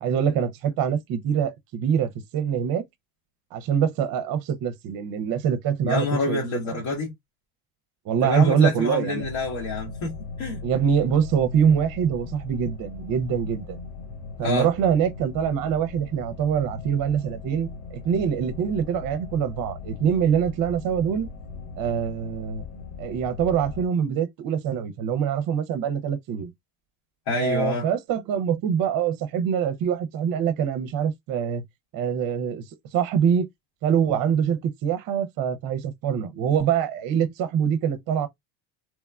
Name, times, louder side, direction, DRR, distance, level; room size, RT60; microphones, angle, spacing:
voice 1, 0.0-2.8 3.5-6.8 8.0-9.2 10.6-13.8 14.4-21.3 21.8-22.6 23.0-26.5 27.3-31.6 31.9-32.6 32.9-33.5 33.8-38.3, right 8 dB, 45° right, 0.6 m, -24 dB
voice 2, 5.8-7.1 8.2-10.6 14.4-14.7 27.3-27.8, left 3 dB, 65° left, 1.2 m, -27 dB
sound 1, 9.2-23.9, left 5 dB, 80° left, 0.8 m, -39 dB
3.0 x 2.0 x 2.3 m
supercardioid pair, 100°, 47 cm